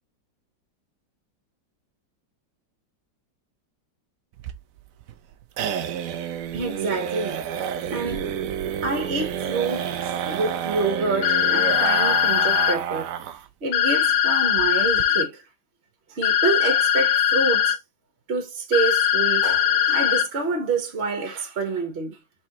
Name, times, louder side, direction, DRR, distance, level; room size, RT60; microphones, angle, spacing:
sound 1, 4.4-13.5 13.8-13.9 14.2-14.3 14.6-15.0, right 8 dB, 80° right, 0.7 m, -29 dB
voice 1, 6.5-7.5 7.9-8.3 8.8-13.1 13.6-15.4 16.1-17.8 18.3-22.2, right 3 dB, 40° right, 1.3 m, -27 dB
sound 2, 11.2-12.7 13.7-15.2 16.2-17.7 18.7-20.2, left 9 dB, 80° left, 1.5 m, -20 dB
4.3 x 3.8 x 2.9 m
omnidirectional pair, 2.1 m